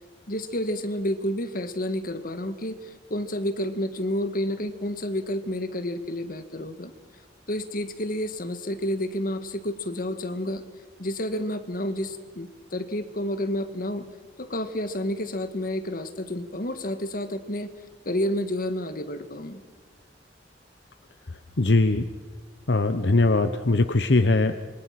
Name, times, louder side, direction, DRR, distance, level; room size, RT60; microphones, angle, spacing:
voice 1, 0.3-6.9 7.5-10.6 11.0-14.0 14.4-17.7 18.1-19.6, left 1 dB, 50° left, 9 dB, 1.8 m, -30 dB
voice 2, 21.6-22.1 22.7-24.6, left 2 dB, 70° left, 9 dB, 1.0 m, -21 dB
26.5 x 25.0 x 6.0 m, 1.5 s
head